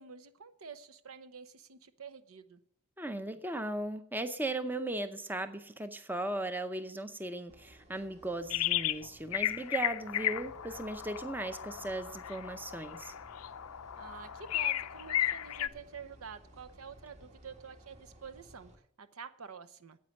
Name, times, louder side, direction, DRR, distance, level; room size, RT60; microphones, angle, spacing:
voice 1, 0.0-2.6 14.0-20.0, right 6 dB, 75° right, 0.8 m, -48 dB
voice 2, 3.0-13.1, right 2 dB, 10° right, 0.6 m, -37 dB
sound 1, 7.5-18.8, equal, 30° right, 1.5 m, -57 dB
sound 2, 8.5-9.0 9.3-15.7, left 12 dB, 80° left, 0.5 m, -34 dB
9.6 x 8.6 x 8.6 m
head